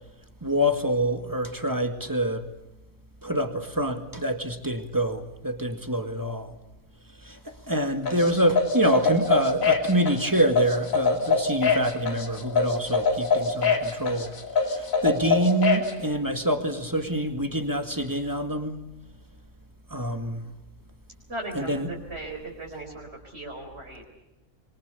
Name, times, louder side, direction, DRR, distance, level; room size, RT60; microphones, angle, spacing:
voice 1, 0.4-2.4 3.2-6.5 7.2-14.3 14.6-18.8 19.9-20.5 21.5-21.9, right 1 dB, 15° right, 6 dB, 2.1 m, -26 dB
sound 1, 8.1-15.9, left 5 dB, 75° left, 3.2 m, -24 dB
voice 2, 21.3-24.1, right 2 dB, 50° right, 0 dB, 4.7 m, -37 dB
26.0 x 23.0 x 6.9 m, 0.98 s
omnidirectional pair, 1.4 m